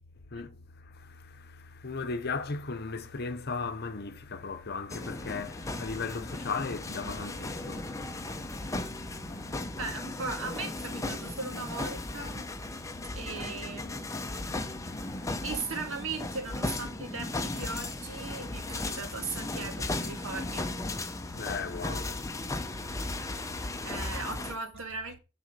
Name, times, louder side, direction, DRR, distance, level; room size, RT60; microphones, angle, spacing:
voice 1, 0.3-9.8 14.8-15.4 21.3-22.2 22.6-23.9, left 4 dB, 50° left, 0.8 m, -38 dB
sound 1, 4.9-24.5, left 2 dB, 15° left, 0.7 m, -36 dB
voice 2, 9.8-12.4 13.2-14.1 15.4-20.7 23.8-25.2, right 4 dB, 65° right, 2.0 m, -38 dB
6.8 x 4.3 x 6.7 m
head